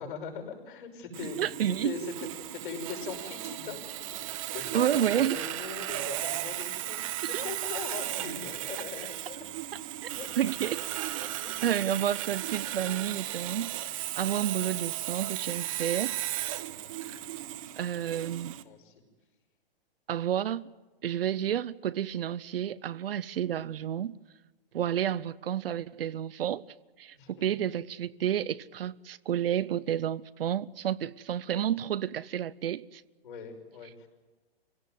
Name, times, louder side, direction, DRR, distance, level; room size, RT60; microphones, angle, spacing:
voice 1, 0.0-1.4 1.8-2.1 2.5-9.5 10.1-10.3 10.6-10.7 11.4-11.5 16.9-17.2 17.8-17.9 18.7-18.9 27.1-27.6 33.2-34.1, left 5 dB, 55° left, 6.1 m, -41 dB
Sawing, 1.1-18.6, right 13 dB, 35° right, 1.0 m, -36 dB
voice 2, 1.4-1.9 4.7-5.4 7.2-7.5 10.4-10.9 11.2-11.3 11.6-13.8 14.2-16.2 17.8-18.6 20.1-20.7 21.0-24.2 24.7-26.6 27.0-33.0, right 10 dB, 70° right, 0.8 m, -30 dB
26.5 x 17.5 x 9.4 m
hypercardioid pair, 160°, 30 cm